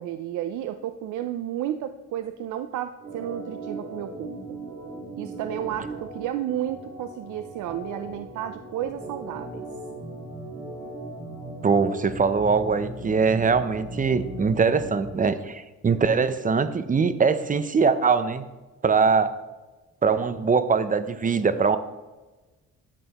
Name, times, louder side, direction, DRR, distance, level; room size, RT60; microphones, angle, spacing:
voice 1, 0.0-4.6 5.2-9.6, right 11 dB, 80° right, 10 dB, 0.5 m, -32 dB
Organ, 3.0-15.1, right 2 dB, 60° right, 3.2 m, -38 dB
voice 2, 11.6-18.5 18.8-19.3 20.0-21.8, right 5 dB, 25° right, 13 dB, 0.6 m, -22 dB
11.0 x 7.6 x 3.0 m, 1.2 s
cardioid pair, 90°, 30 cm